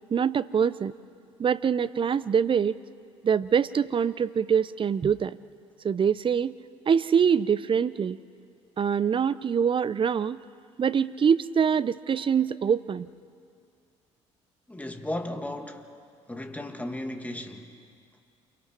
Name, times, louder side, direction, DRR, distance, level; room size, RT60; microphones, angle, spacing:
voice 1, 0.1-0.9 1.4-2.8 3.2-5.4 5.8-6.6 6.9-8.2 8.8-10.4 10.8-13.1, right 7 dB, 35° right, 0.7 m, -24 dB
voice 2, 14.7-15.9 16.3-17.7, left 1 dB, 10° left, 2.3 m, -35 dB
28.5 x 23.5 x 4.6 m
hypercardioid pair, 55°, 15 cm